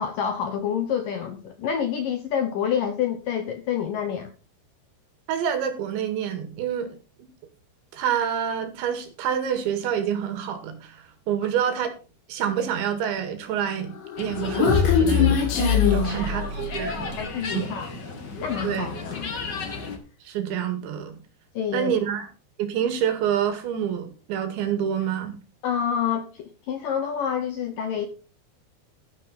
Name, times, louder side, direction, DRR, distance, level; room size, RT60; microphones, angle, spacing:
voice 1, 0.0-4.3 16.0-16.1 17.2-17.9 18.4-19.3 21.6-21.9 25.6-28.1, left 8 dB, 70° left, 2.1 m, -28 dB
voice 2, 5.3-7.0 7.9-11.9 12.3-17.2 17.5-17.6 18.6-18.9 20.3-21.2 21.7-22.3 22.6-25.4, right 9 dB, 75° right, 4.2 m, -27 dB
Human voice, 14.0-17.0, left 7 dB, 85° left, 5.9 m, -22 dB
sound 1, 14.2-20.0, left 4 dB, 45° left, 1.4 m, -35 dB
13.0 x 11.0 x 4.3 m
omnidirectional pair, 5.3 m